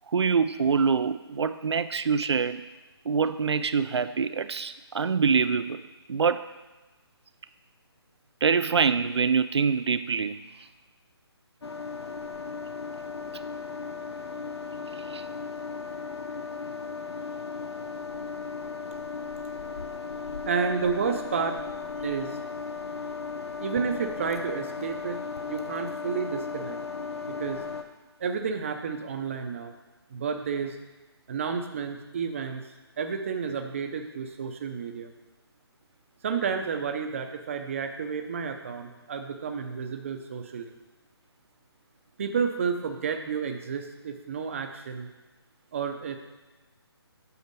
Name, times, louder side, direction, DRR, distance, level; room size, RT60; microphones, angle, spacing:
voice 1, 0.1-2.7 3.1-5.8 6.1-6.5 8.4-10.4 15.0-15.3, right 5 dB, 90° right, 12 dB, 0.4 m, -25 dB
sound 1, 11.6-27.8, left 5 dB, 75° left, 0.9 m, -36 dB
voice 2, 20.4-21.6 22.0-22.4 23.6-25.2 25.5-26.8 27.2-27.6 28.2-29.7 30.1-30.8 31.3-32.6 33.0-35.1 36.2-40.7 42.2-45.1 45.7-46.2, right 6 dB, 30° right, 6 dB, 0.6 m, -31 dB
8.2 x 4.3 x 6.7 m, 1.2 s
hypercardioid pair, 165°, 14 cm